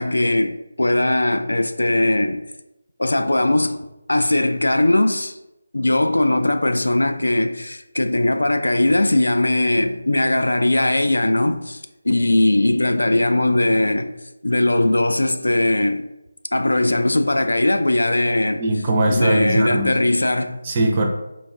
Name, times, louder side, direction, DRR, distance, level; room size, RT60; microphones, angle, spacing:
voice 1, 0.0-2.4 3.0-3.8 4.1-5.4 5.7-14.1 14.4-16.0 16.5-18.6 19.1-20.6, left 1 dB, 75° left, 0.3 m, -19 dB
voice 2, 18.6-20.0 20.6-21.1, right 2 dB, 25° right, 0.5 m, -20 dB
4.1 x 2.3 x 3.5 m
figure-of-eight pair, 160°, 0 cm